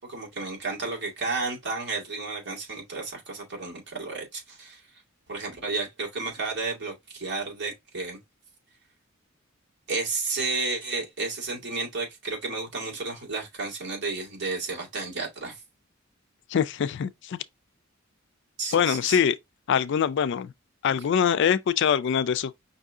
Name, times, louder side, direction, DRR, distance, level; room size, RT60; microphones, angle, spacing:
voice 1, 0.1-4.8 5.3-8.2 9.9-15.6 18.6-19.2, right 3 dB, 60° right, 2.0 m, -32 dB
voice 2, 16.5-17.4 18.7-19.4 19.7-20.5 20.8-22.6, left 8 dB, 60° left, 0.3 m, -23 dB
5.3 x 2.7 x 3.5 m
head